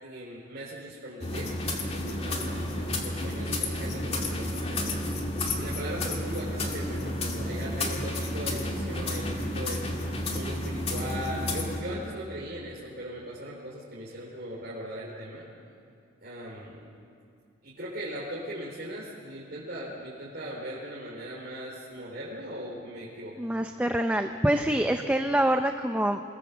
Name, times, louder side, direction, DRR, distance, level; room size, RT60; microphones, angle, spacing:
voice 1, 0.0-1.5 1.9-5.0 5.3-9.8 10.3-15.5 16.2-16.9 17.6-23.4, equal, 50° right, -7 dB, 4.1 m, -39 dB
sound 1, 1.2-11.8, left 1 dB, 30° left, 2.2 m, -31 dB
voice 2, 23.4-26.2, right 1 dB, 5° right, 6 dB, 0.6 m, -25 dB
28.0 x 19.0 x 7.3 m, 2.3 s
head